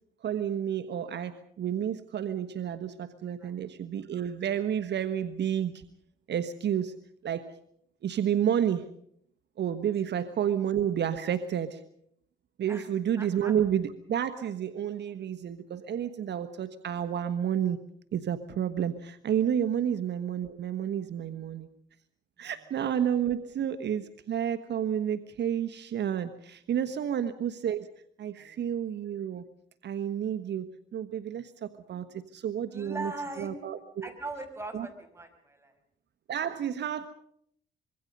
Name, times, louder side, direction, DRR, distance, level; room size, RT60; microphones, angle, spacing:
voice 1, 0.2-5.8 6.3-6.9 7.2-7.5 8.0-8.9 9.6-11.8 12.6-17.8 18.1-21.7 22.4-27.9 28.2-29.4 29.8-33.1 33.4-34.1 34.7-34.9 36.3-37.1, right 9 dB, 60° right, 9 dB, 1.3 m, -30 dB
voice 2, 13.2-13.5 28.4-28.6 32.7-33.5 34.0-35.7, right 2 dB, 15° right, 6 dB, 5.7 m, -40 dB
25.5 x 23.0 x 5.4 m, 0.68 s
cardioid pair, 90°, 20 cm